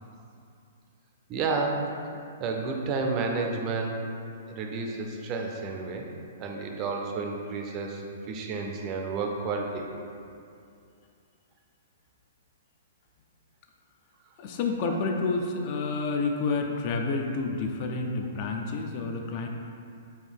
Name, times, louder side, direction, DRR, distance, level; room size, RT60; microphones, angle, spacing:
voice 1, 1.3-1.8 2.4-4.1 4.5-6.1 6.4-8.0 8.3-9.9 14.9-15.0, right 4 dB, 30° right, 2 dB, 0.4 m, -31 dB
voice 2, 14.4-19.5, left 3 dB, 40° left, 2 dB, 0.4 m, -29 dB
4.4 x 2.7 x 3.5 m, 2.4 s
hypercardioid pair, 145°, 0 cm